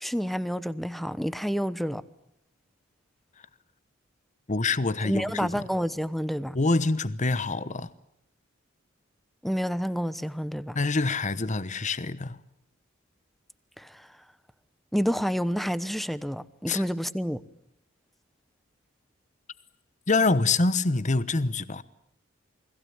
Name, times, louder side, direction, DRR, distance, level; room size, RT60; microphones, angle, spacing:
voice 1, 0.0-2.0 5.0-6.5 9.4-10.8 13.8-14.0 14.9-17.4, equal, ahead, 1.0 m, -29 dB
voice 2, 4.5-5.6 6.5-7.9 10.7-12.4 16.7-16.8 20.1-21.8, left 3 dB, 35° left, 1.0 m, -26 dB
29.0 x 21.0 x 8.7 m
head